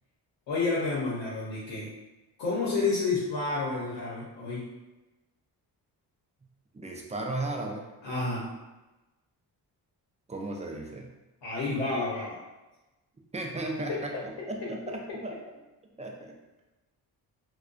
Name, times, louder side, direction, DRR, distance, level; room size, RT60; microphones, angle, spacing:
voice 1, 0.5-1.9 2.4-4.7 8.0-8.5 11.4-12.4 13.9-14.0, left 3 dB, 65° left, -6 dB, 0.9 m, -30 dB
voice 2, 6.7-7.9 10.3-11.1 13.3-15.4 16.0-16.4, right 2 dB, 15° right, 1 dB, 0.4 m, -35 dB
2.3 x 2.2 x 2.4 m, 1.1 s
supercardioid pair, 55°, 45 cm